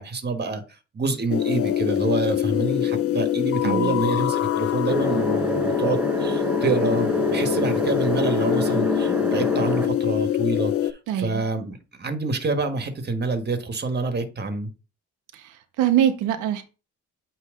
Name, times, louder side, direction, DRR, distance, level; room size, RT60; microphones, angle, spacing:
voice 1, 0.0-14.7, right 3 dB, 35° right, 1.3 m, -27 dB
sound 1, 1.3-10.9, left 11 dB, 50° left, 0.5 m, -24 dB
voice 2, 3.6-4.0 11.1-11.4 15.3-16.6, right 10 dB, 90° right, 0.7 m, -24 dB
sound 2, 4.9-9.9, right 1 dB, 5° right, 1.0 m, -27 dB
8.4 x 3.2 x 3.6 m
cardioid pair, 90°, 30 cm